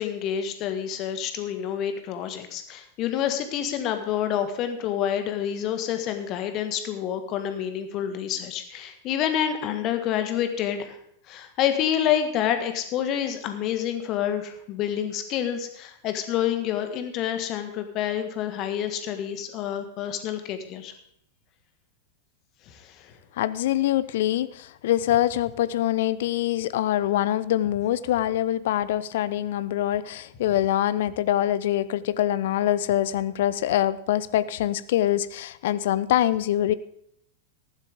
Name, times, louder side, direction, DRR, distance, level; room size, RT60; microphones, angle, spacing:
voice 1, 0.0-11.0 11.3-20.9 22.7-23.2, left 10 dB, 35° left, 8 dB, 1.6 m, -28 dB
voice 2, 23.4-36.7, left 12 dB, 55° left, 17 dB, 0.6 m, -24 dB
14.5 x 11.5 x 3.6 m, 0.72 s
figure-of-eight pair, 90°, 0 cm